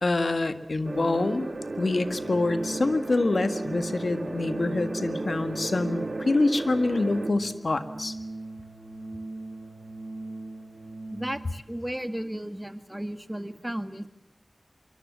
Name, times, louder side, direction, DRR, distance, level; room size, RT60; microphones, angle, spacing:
voice 1, 0.0-1.5 1.8-8.1, left 2 dB, 80° left, 10 dB, 1.8 m, -26 dB
sound 1, 0.8-7.3, right 2 dB, 75° right, 2.3 m, -35 dB
Organ, 1.2-11.5, right 2 dB, 55° right, 5.2 m, -40 dB
voice 2, 11.1-14.1, right 1 dB, 15° right, 10 dB, 2.0 m, -34 dB
25.5 x 23.5 x 7.5 m, 0.88 s
wide cardioid pair, 55°, 0 cm